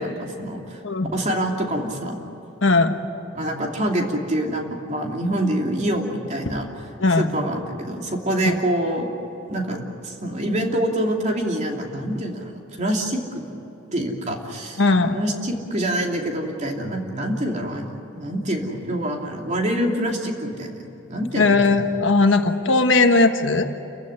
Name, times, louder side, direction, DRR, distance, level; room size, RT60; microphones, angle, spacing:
voice 1, 0.0-0.8 1.1-2.2 3.3-6.9 7.2-9.1 9.5-13.4 13.9-14.8 15.1-20.8 21.1-21.8, right 1 dB, 35° right, 1 dB, 2.9 m, -26 dB
voice 2, 2.6-3.0 7.0-7.3 8.4-8.5 14.8-15.2 21.3-23.7, left 3 dB, 70° left, 7 dB, 1.4 m, -18 dB
28.5 x 15.5 x 9.8 m, 2.9 s
head